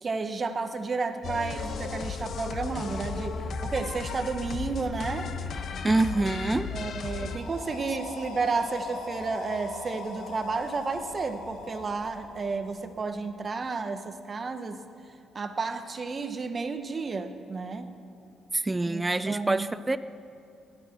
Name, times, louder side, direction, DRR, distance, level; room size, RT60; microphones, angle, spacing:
voice 1, 0.0-5.3 6.7-14.8 15.3-17.9 18.9-19.7, right 4 dB, 35° right, 9 dB, 1.1 m, -32 dB
sound 1, 1.2-7.4, left 5 dB, 60° left, 1.1 m, -35 dB
voice 2, 5.8-6.7 18.5-20.0, right 2 dB, 15° right, 13 dB, 0.4 m, -26 dB
sound 2, 7.2-13.1, left 3 dB, 85° left, 2.1 m, -40 dB
17.5 x 12.5 x 6.0 m, 2.5 s
cardioid pair, 90°, 0 cm